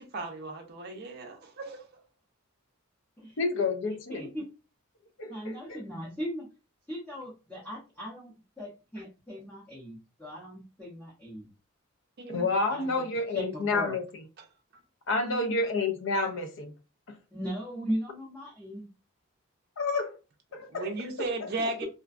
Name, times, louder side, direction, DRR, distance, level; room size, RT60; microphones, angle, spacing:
voice 1, 0.0-1.9 12.2-12.5 14.7-14.8 20.7-21.8, right 2 dB, 50° right, 0.5 m, -35 dB
voice 2, 3.4-4.3 5.2-5.8 12.3-14.2 15.1-16.7 17.1-17.2 19.8-20.2 20.5-20.9 21.2-21.5, left 3 dB, 60° left, 0.5 m, -30 dB
voice 3, 4.1-4.4 5.3-6.5 6.9-8.3 8.6-11.5 12.7-13.0 13.3-14.0 15.2-15.5 17.3-18.9, equal, 5° left, 0.7 m, -37 dB
2.5 x 2.2 x 2.4 m
head